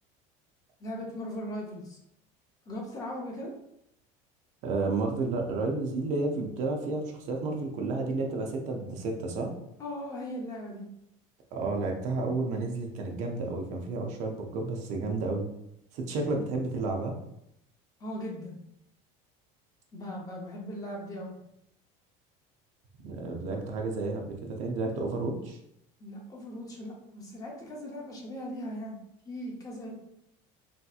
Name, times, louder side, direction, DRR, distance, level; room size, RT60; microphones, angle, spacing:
voice 1, 0.8-2.0 2.7-3.5 9.8-10.8 16.3-16.5 18.0-18.6 19.9-21.3 26.0-29.0 29.3-29.9, equal, 20° left, -1 dB, 0.6 m, -38 dB
voice 2, 4.6-9.5 11.5-15.5 15.9-17.2 23.0-25.6, right 3 dB, 45° right, 2 dB, 0.5 m, -31 dB
3.3 x 2.7 x 2.3 m, 0.77 s
cardioid pair, 165°, 17 cm